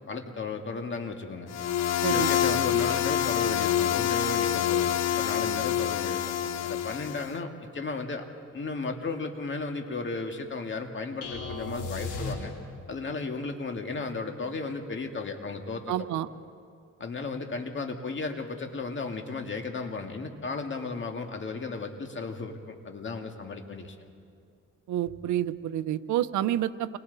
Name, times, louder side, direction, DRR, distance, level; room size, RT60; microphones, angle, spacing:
voice 1, 0.1-1.5 2.1-6.2 6.6-8.3 8.5-12.5 12.9-16.1 17.0-24.1, left 3 dB, 40° left, 4 dB, 2.1 m, -34 dB
sound 1, 1.5-7.3, left 10 dB, 60° left, 0.8 m, -26 dB
sound 2, 11.2-12.9, left 3 dB, 85° left, 4.3 m, -35 dB
voice 2, 15.9-16.3 24.9-27.0, right 12 dB, 75° right, 13 dB, 0.8 m, -29 dB
28.5 x 22.5 x 4.1 m, 2.2 s
cardioid pair, 90°, 30 cm